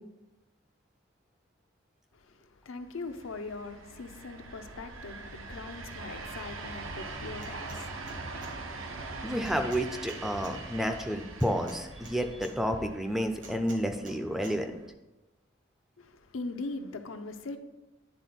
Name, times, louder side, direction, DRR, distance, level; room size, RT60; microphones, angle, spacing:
voice 1, 2.1-9.0 16.0-17.6, left 3 dB, 85° left, 0.6 m, -41 dB
sound 1, 3.0-14.9, right 3 dB, 85° right, 0.8 m, -43 dB
sound 2, 7.4-7.8 8.1-8.5 9.4-10.5 11.4-12.5 13.4-14.2 14.4-14.6, right 3 dB, 70° right, 1.3 m, -49 dB
voice 2, 9.2-14.7, equal, ahead, 0.4 m, -30 dB
9.8 x 3.8 x 4.3 m
head